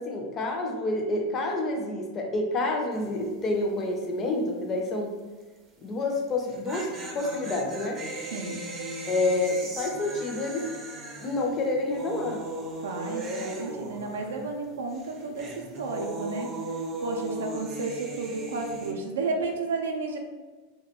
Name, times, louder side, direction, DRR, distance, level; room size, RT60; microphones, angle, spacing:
voice 1, 0.0-5.2 5.8-6.9 7.1-8.0 9.1-10.7 11.2-12.4, left 2 dB, 30° left, 2 dB, 0.5 m, -28 dB
sound 1, 2.9-3.3 3.5-3.6 6.3-14.6 14.9-18.9, right 2 dB, 30° right, 0.5 m, -37 dB
voice 2, 8.3-8.6 12.8-15.5 15.8-16.5 17.0-20.2, right 3 dB, 90° right, 2 dB, 0.4 m, -32 dB
2.3 x 2.2 x 2.8 m, 1.3 s
hypercardioid pair, 115°, 0 cm